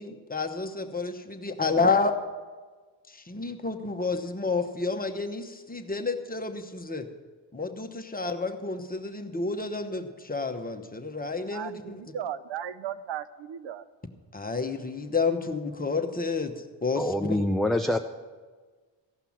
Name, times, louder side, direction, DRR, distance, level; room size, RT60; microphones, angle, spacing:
voice 1, 0.0-2.1 3.3-7.0 7.5-12.0 14.3-16.5 16.8-17.4, left 4 dB, 20° left, 1.1 m, -30 dB
voice 2, 11.5-13.9, right 9 dB, 70° right, 0.6 m, -36 dB
voice 3, 17.0-18.0, left 1 dB, ahead, 0.4 m, -25 dB
15.5 x 5.8 x 7.2 m
cardioid pair, 80°, 46 cm